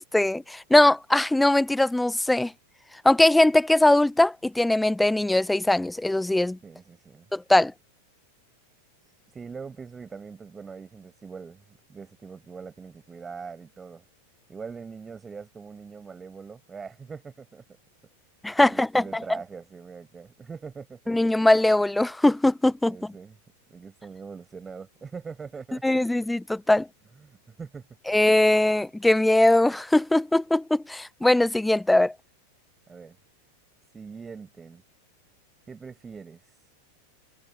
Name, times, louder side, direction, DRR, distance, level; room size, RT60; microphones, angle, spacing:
voice 1, 0.0-2.5 3.0-6.6 7.3-7.7 18.4-19.4 21.1-23.1 25.8-26.9 28.1-32.1, left 1 dB, 5° left, 0.9 m, -21 dB
voice 2, 6.6-7.3 9.3-11.6 11.9-14.0 14.5-17.6 18.6-21.1 22.9-23.4 23.7-26.0 27.2-27.9 32.9-33.2 33.9-34.8 35.7-36.6, right 5 dB, 15° right, 6.3 m, -42 dB
figure-of-eight pair, 90°, 0 cm